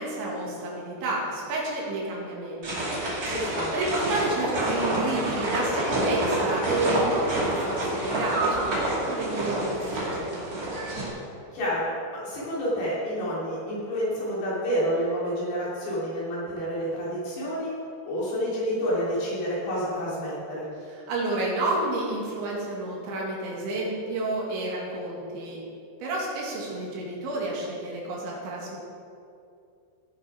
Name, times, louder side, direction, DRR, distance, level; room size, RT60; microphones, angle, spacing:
voice 1, 0.0-3.3 3.7-10.5 20.9-25.6 26.0-28.8, right 2 dB, 85° right, -3 dB, 4.5 m, -30 dB
sound 1, 2.6-11.1, right 1 dB, 30° right, 1.7 m, -28 dB
voice 2, 3.2-3.7 11.5-11.8 12.1-17.7 18.0-20.7, equal, 70° left, -8 dB, 5.5 m, -29 dB
17.5 x 6.5 x 5.0 m, 2.5 s
omnidirectional pair, 5.1 m